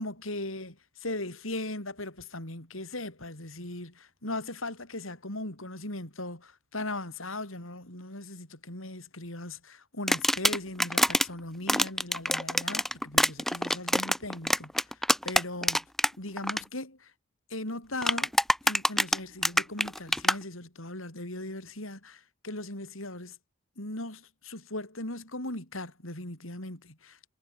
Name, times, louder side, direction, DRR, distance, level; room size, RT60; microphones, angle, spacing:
voice 1, 0.0-15.0 15.2-15.9 16.2-17.1 17.5-18.3 18.6-23.4 23.8-27.3, left 2 dB, 70° left, 7.9 m, -38 dB
sound 1, 10.1-11.3 11.7-16.1 16.4-16.6 18.0-20.4, equal, ahead, 1.1 m, -25 dB
head